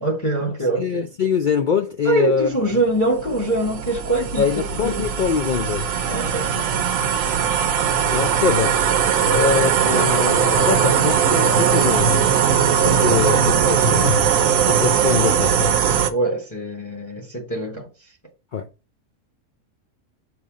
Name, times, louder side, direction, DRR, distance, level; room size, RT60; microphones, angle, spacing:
voice 1, 0.0-1.1 2.0-5.1 6.1-6.9 9.1-9.7 13.1-13.8 16.1-17.9, right 2 dB, 15° left, 1.1 m, -24 dB
voice 2, 0.8-2.5 4.4-5.9 8.1-8.8 9.3-12.2 12.8-14.1 14.7-15.7 18.5-18.7, left 6 dB, 60° left, 0.5 m, -23 dB
sound 1, 2.6-16.1, right 7 dB, 75° right, 1.1 m, -19 dB
sound 2, 4.6-15.4, left 1 dB, 35° left, 2.3 m, -40 dB
6.9 x 3.2 x 5.0 m
omnidirectional pair, 1.4 m